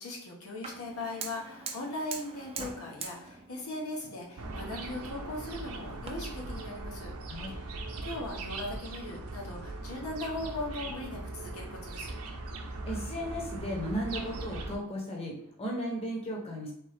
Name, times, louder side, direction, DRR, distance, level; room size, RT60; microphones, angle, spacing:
voice 1, 0.0-7.1 7.5-12.1, left 2 dB, 75° left, -2 dB, 1.1 m, -39 dB
Fire, 0.6-6.1, right 5 dB, 25° right, 0.6 m, -44 dB
sound 1, 4.4-14.8, right 2 dB, 75° right, 0.6 m, -40 dB
voice 2, 12.9-16.7, equal, 25° left, -1 dB, 1.0 m, -35 dB
3.7 x 3.6 x 3.5 m, 0.71 s
head